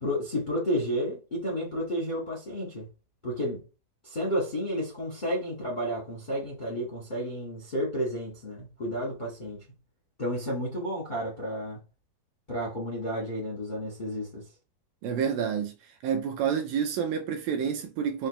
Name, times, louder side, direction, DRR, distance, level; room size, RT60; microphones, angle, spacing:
voice 1, 0.0-2.9 3.2-3.6 4.0-9.6 10.2-11.8 12.5-14.5, equal, 45° left, 0.6 m, -31 dB
voice 2, 15.0-15.7 16.0-18.3, right 7 dB, 80° right, 2.2 m, -28 dB
5.9 x 2.9 x 3.2 m
omnidirectional pair, 4.3 m